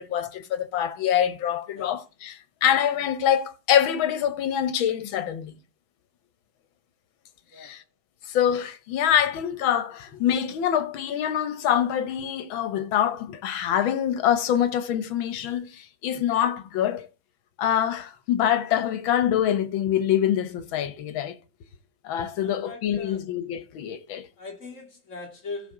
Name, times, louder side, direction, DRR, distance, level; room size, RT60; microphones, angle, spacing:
voice 1, 0.0-5.5 7.6-7.8 8.3-17.1 17.6-21.4 22.0-24.3, left 10 dB, 85° left, 1.7 m, -25 dB
voice 2, 22.4-23.2 24.4-25.7, left 3 dB, 40° left, 2.4 m, -40 dB
15.5 x 5.9 x 3.7 m
omnidirectional pair, 2.1 m